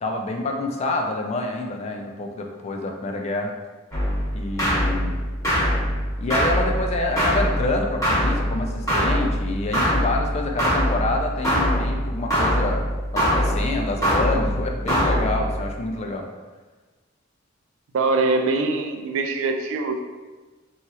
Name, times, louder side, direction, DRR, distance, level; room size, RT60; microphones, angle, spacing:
voice 1, 0.0-3.5 4.3-5.3 6.2-12.8 13.1-16.3, left 2 dB, 35° left, 3 dB, 0.3 m, -27 dB
sound 1, 3.9-15.7, equal, 15° left, 0.9 m, -23 dB
voice 2, 17.9-20.0, right 3 dB, 75° right, 5 dB, 0.3 m, -23 dB
2.9 x 2.3 x 2.8 m, 1.3 s
head